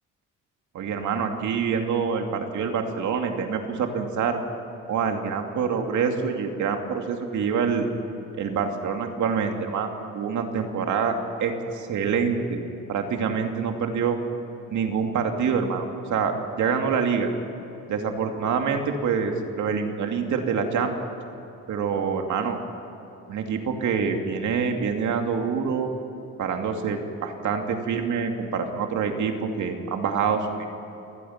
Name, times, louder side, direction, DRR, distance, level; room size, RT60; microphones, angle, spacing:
voice 1, 0.7-4.4 4.9-7.9 8.3-12.6 12.9-14.2 14.7-17.3 17.9-20.9 21.7-22.6 23.3-25.9 26.4-30.7, right 6 dB, 75° right, 4 dB, 2.6 m, -26 dB
28.5 x 19.5 x 5.9 m, 3.0 s
cardioid pair, 90°, 30 cm